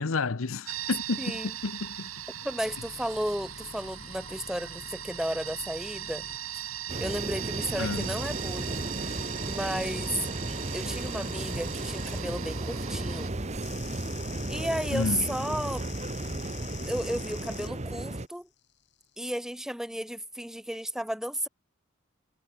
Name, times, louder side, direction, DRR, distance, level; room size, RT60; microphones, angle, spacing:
voice 1, 0.0-2.1 7.8-8.1 14.9-15.3, left 3 dB, 85° left, 0.9 m, -31 dB
sound 1, 0.7-13.3, right 11 dB, 90° right, 2.7 m, -39 dB
voice 2, 1.2-1.5 2.4-6.3 6.6-6.7 7.0-8.8 9.4-10.1 10.7-13.3 14.5-15.8 16.8-18.5 19.2-21.5, equal, 5° right, 2.5 m, -33 dB
sound 2, 2.6-6.4 7.9-12.2 13.6-17.7 18.9-19.2, left 6 dB, 60° left, 7.1 m, -46 dB
sound 3, 6.9-18.3, right 2 dB, 35° right, 1.2 m, -34 dB
head